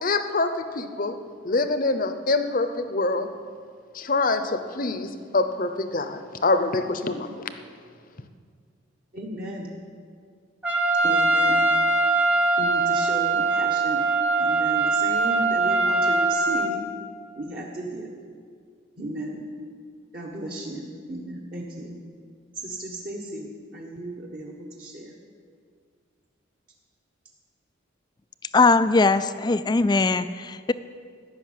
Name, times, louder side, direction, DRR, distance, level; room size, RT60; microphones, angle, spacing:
voice 1, 0.0-1.2 1.4-3.3 3.9-7.3, left 3 dB, 40° left, 9 dB, 0.7 m, -25 dB
voice 2, 9.1-9.7 11.0-11.7 12.6-14.1 14.4-16.9 17.3-18.1 19.0-19.5 20.1-21.9 22.5-25.1, right 1 dB, 45° right, -2 dB, 1.3 m, -35 dB
Trumpet, 10.6-16.7, right 3 dB, 5° right, 0.8 m, -22 dB
voice 3, 28.5-30.7, left 3 dB, 20° left, 13 dB, 0.3 m, -20 dB
13.5 x 6.3 x 9.4 m, 2.1 s
head